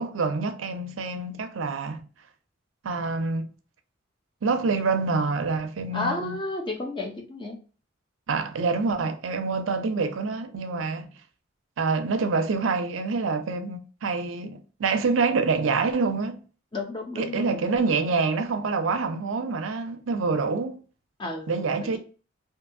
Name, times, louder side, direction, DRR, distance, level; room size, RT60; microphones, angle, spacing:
voice 1, 0.0-2.0 2.8-3.5 4.4-6.4 8.3-11.1 11.8-16.4 17.2-20.8 21.5-22.0, right 4 dB, 80° right, 0.5 m, -26 dB
voice 2, 5.9-7.6 16.7-17.6 21.2-21.5 21.8-22.0, left 2 dB, 25° left, 0.6 m, -32 dB
2.6 x 2.6 x 2.5 m
head